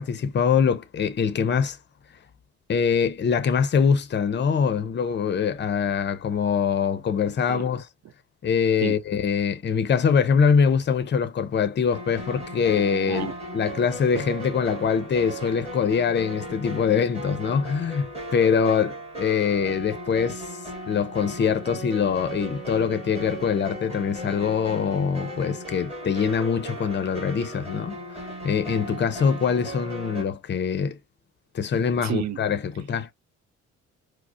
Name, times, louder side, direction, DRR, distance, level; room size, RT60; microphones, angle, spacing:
voice 1, 0.0-1.8 2.7-7.9 8.4-20.4 20.9-28.0 28.4-31.0 31.5-33.1, left 6 dB, 35° left, 0.6 m, -23 dB
sound 1, 11.9-30.2, right 1 dB, 20° right, 1.9 m, -37 dB
voice 2, 32.0-32.4, right 11 dB, 65° right, 0.5 m, -29 dB
4.8 x 2.1 x 2.3 m
cardioid pair, 90°, 30 cm